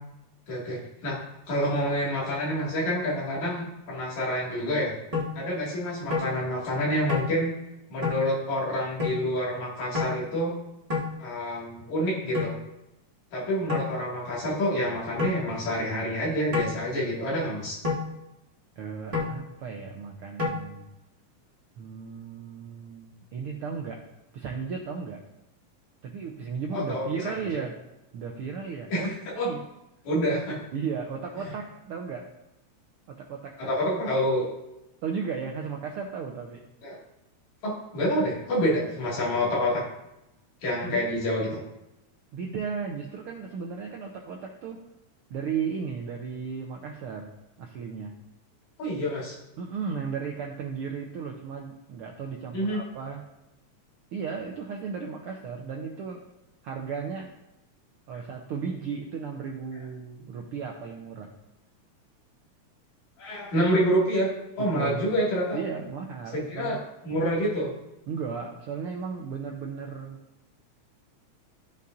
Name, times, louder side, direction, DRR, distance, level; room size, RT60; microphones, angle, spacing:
voice 1, 0.5-1.2 1.5-4.9 5.4-7.5 7.9-10.5 11.2-12.6 13.3-17.8 26.7-27.4 28.9-29.5 30.1-30.6 31.4-31.5 33.6-34.5 36.8-37.0 37.6-39.8 40.6-41.6 48.8-49.4 52.5-52.8 63.2-65.6 66.3-66.8 67.0-67.7, equal, 75° left, -6 dB, 3.6 m, -27 dB
sound 1, 5.1-5.3 6.1-6.3 7.1-7.3 8.0-8.2 9.0-9.2 9.9-10.1 10.9-11.1 12.3-12.5 13.7-13.9 15.2-15.4 16.5-16.8 17.8-18.0 19.1-19.3 20.4-20.5, left 4 dB, 20° right, 0.8 m, -27 dB
voice 2, 18.8-20.9 21.8-24.0 24.3-25.2 26.0-27.8 28.1-29.6 30.7-32.3 33.1-33.7 35.0-36.6 40.8-41.0 42.3-44.8 45.3-47.3 47.6-48.1 49.6-53.3 54.1-56.2 56.6-57.3 58.1-61.3 64.6-65.0 65.5-66.8 68.1-70.2, right 6 dB, 85° right, 1 dB, 1.2 m, -35 dB
14.0 x 5.4 x 2.6 m, 0.92 s
omnidirectional pair, 3.4 m